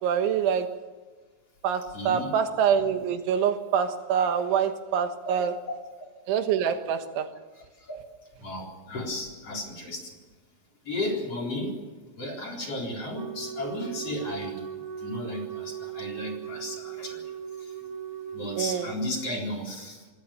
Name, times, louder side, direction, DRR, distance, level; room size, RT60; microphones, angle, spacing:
voice 1, 0.0-0.8 1.6-5.5 6.3-7.3 18.6-18.9, right 8 dB, 80° right, 3.8 m, -25 dB
voice 2, 1.9-2.3 5.2-5.3 5.6-5.7 7.9-8.0 8.4-10.0 10.8-11.8 12.2-14.6 15.0-17.2 18.3-20.0, left 1 dB, 35° left, 4.7 m, -34 dB
Wind instrument woodwind instrument, 13.1-19.2, right 9 dB, 25° right, 2.3 m, -38 dB
25.5 x 19.0 x 6.8 m
omnidirectional pair, 5.4 m